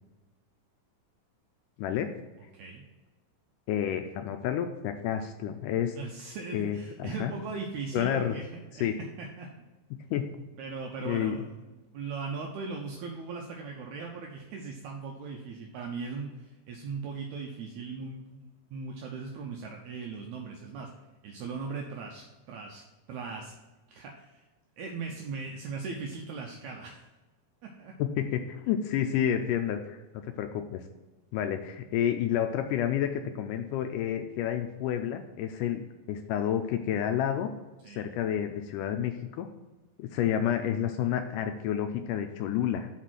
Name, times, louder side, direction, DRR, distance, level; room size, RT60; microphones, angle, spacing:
voice 1, 1.8-2.1 3.7-6.0 6.5-7.3 7.9-8.4 8.8-8.9 10.1-10.3 11.1-11.4 28.0-30.0 30.2-30.8 31.3-35.8 36.1-37.5 38.0-39.5 40.0-42.9, left 10 dB, 80° left, 6 dB, 1.9 m, -30 dB
voice 2, 6.0-8.5 8.7-8.9 9.2-9.5 10.6-20.9 21.2-22.8 23.1-23.5 23.9-24.4 24.8-27.0 27.6-27.9 37.8-38.1, right 4 dB, 80° right, 0 dB, 1.7 m, -39 dB
6.2 x 4.1 x 6.2 m, 1.2 s
omnidirectional pair, 4.1 m